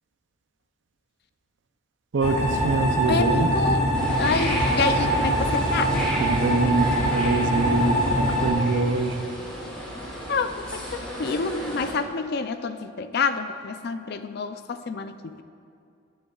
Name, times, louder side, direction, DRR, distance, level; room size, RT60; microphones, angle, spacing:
voice 1, 2.1-3.5 6.2-9.3, right 3 dB, 65° right, 8 dB, 0.5 m, -24 dB
sound 1, 2.2-8.5, right 1 dB, 35° left, 1.8 m, -23 dB
voice 2, 3.1-3.8 4.2-5.9 10.3-15.4, left 4 dB, 55° left, 10 dB, 0.4 m, -28 dB
sound 2, 3.9-11.9, equal, 5° left, 2.5 m, -34 dB
18.5 x 7.8 x 2.4 m, 2.5 s
head